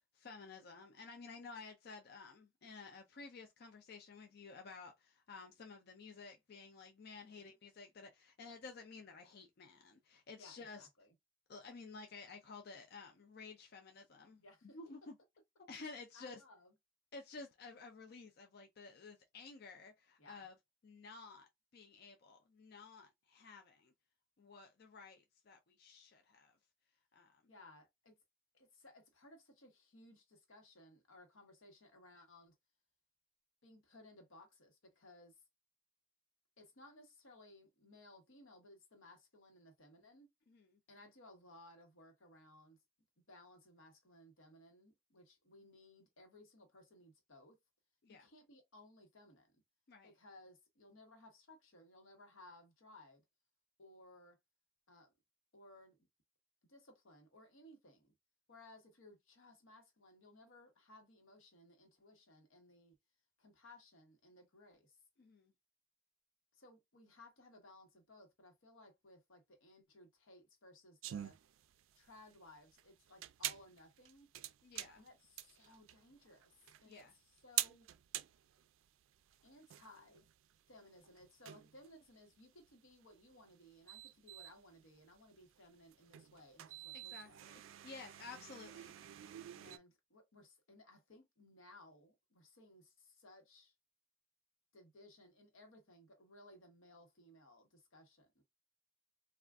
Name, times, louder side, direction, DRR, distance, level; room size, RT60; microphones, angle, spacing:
voice 1, 0.1-10.9 11.5-14.4 14.7-15.2 15.7-16.4 17.1-20.6 20.8-23.9 24.4-26.6 27.1-27.4 40.5-40.8 48.0-48.3 49.9-50.1 65.2-65.5 74.6-75.0 76.9-77.1 86.9-88.9, left 4 dB, 50° left, 0.4 m, -53 dB
voice 2, 7.2-7.5 8.4-8.5 10.4-11.1 14.4-14.8 16.1-16.7 20.2-20.5 27.5-28.2 28.5-32.5 33.6-35.4 36.6-40.3 40.9-42.8 43.3-47.6 48.1-49.5 50.0-53.2 53.8-54.4 54.9-55.1 55.5-56.0 56.7-58.1 58.5-63.0 63.4-65.0 66.5-71.4 71.9-74.3 74.9-77.9 79.4-80.3 80.7-87.4 89.5-93.7 94.7-98.4, left 1 dB, 90° left, 1.1 m, -61 dB
sound 1, 71.0-89.8, right 13 dB, 85° right, 0.3 m, -47 dB
2.4 x 2.4 x 3.4 m
head